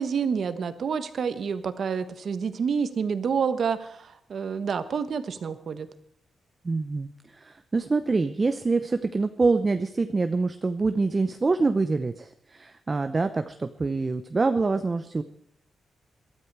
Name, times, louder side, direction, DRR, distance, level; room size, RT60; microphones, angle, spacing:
voice 1, 0.0-5.9, right 6 dB, 55° right, 11 dB, 1.2 m, -28 dB
voice 2, 6.6-15.2, right 3 dB, 25° right, 9 dB, 0.6 m, -25 dB
22.0 x 13.0 x 4.7 m, 0.68 s
wide cardioid pair, 140°, 0 cm